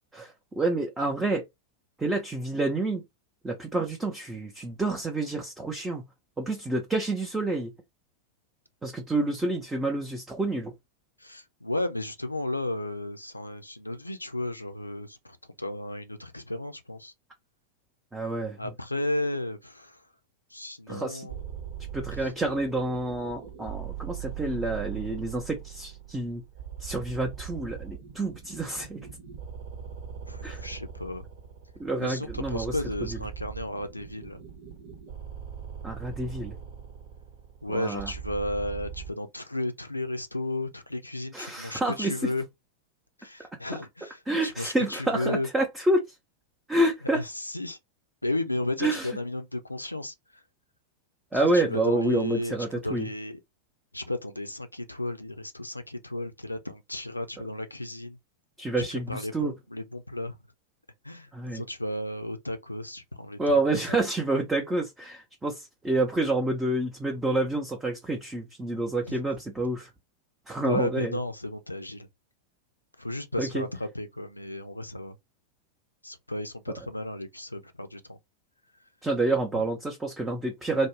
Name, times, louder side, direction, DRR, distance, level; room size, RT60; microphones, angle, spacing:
voice 1, 0.2-1.4 2.0-3.0 3.4-6.0 6.4-7.7 8.8-10.7 18.1-18.6 20.9-21.3 21.9-26.4 26.8-29.1 30.4-30.6 31.8-32.8 35.8-36.6 37.7-38.1 41.3-42.3 44.3-46.1 46.7-47.2 48.8-49.1 51.3-53.1 58.6-59.5 61.3-61.6 63.4-69.9 70.5-71.1 73.4-73.6 79.0-80.9, right 2 dB, 10° right, 0.6 m, -28 dB
voice 2, 11.2-17.1 18.6-20.0 20.5-21.4 22.2-22.3 30.3-31.3 32.0-34.4 37.6-42.4 43.2-45.5 47.1-47.8 48.2-50.1 51.3-52.5 52.8-53.4 53.9-58.2 58.9-60.4 61.0-64.0 69.1-69.2 70.6-72.1 73.0-75.1 76.0-78.2 79.5-79.6, left 1 dB, 85° left, 0.4 m, -34 dB
sound 1, 21.3-39.1, right 9 dB, 55° right, 1.0 m, -40 dB
2.5 x 2.0 x 3.1 m
figure-of-eight pair, 90°, 0 cm